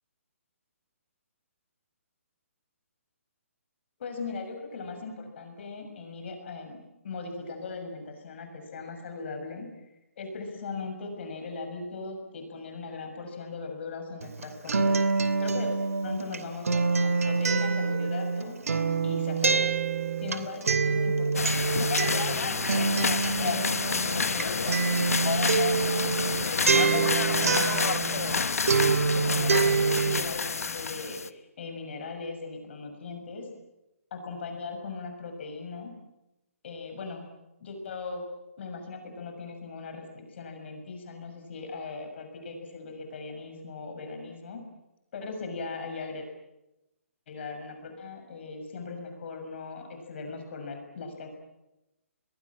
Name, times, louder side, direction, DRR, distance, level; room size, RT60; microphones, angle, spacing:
voice 1, 4.0-9.9 10.2-15.0 15.4-15.7 16.0-18.6 19.0-19.7 20.2-23.1 23.4-28.6 29.1-33.5 34.1-35.9 36.6-37.3 37.6-38.2 38.6-44.6 45.1-46.3 47.3-51.3, left 4 dB, 50° left, 5 dB, 6.5 m, -39 dB
Acoustic guitar, 14.2-28.4 28.7-30.2, right 4 dB, 80° right, 2.8 m, -26 dB
sound 1, 21.3-31.3, left 5 dB, 85° left, 1.2 m, -29 dB
27.0 x 22.0 x 8.7 m, 0.95 s
hypercardioid pair, 150°, 8 cm